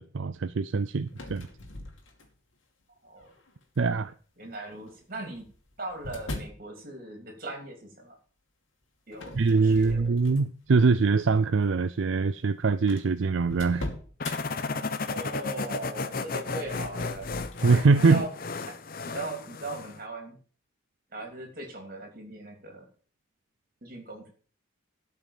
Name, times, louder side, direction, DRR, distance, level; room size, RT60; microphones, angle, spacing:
voice 1, 0.0-1.5 3.8-4.1 9.4-13.9 17.6-18.3, right 4 dB, 70° right, 0.5 m, -23 dB
sound 1, 1.1-2.5 3.2-3.6 4.7-6.7 9.1-10.7 11.2-11.4 12.2-12.3 12.4-12.5 12.9-14.4 16.5-17.8, left 1 dB, 75° left, 2.6 m, -41 dB
voice 2, 4.4-5.5 5.8-8.2 9.1-10.1 14.7-17.4 18.0-18.3 18.7-18.8 19.0-20.4 21.1-22.9 23.8-24.3, right 2 dB, 45° right, 3.1 m, -39 dB
sound 2, 14.2-20.0, left 4 dB, 45° left, 0.8 m, -34 dB
13.0 x 5.7 x 7.3 m
head